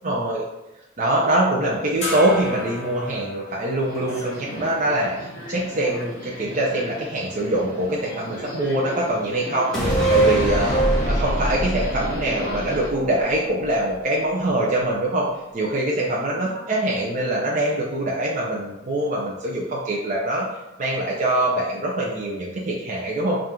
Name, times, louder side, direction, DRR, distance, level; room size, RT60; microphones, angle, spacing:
voice 1, 0.0-0.4 1.0-15.3 15.5-20.5 20.8-23.4, right 1 dB, 40° right, -4 dB, 0.6 m, -24 dB
sound 1, 2.0-6.8, left 2 dB, 35° left, 1.5 m, -36 dB
Subway metro underground, 3.8-12.9, equal, 50° left, 1.3 m, -35 dB
sound 2, 9.7-13.3 13.6-13.7, right 2 dB, ahead, 1.2 m, -22 dB
3.7 x 2.6 x 4.3 m, 0.95 s
head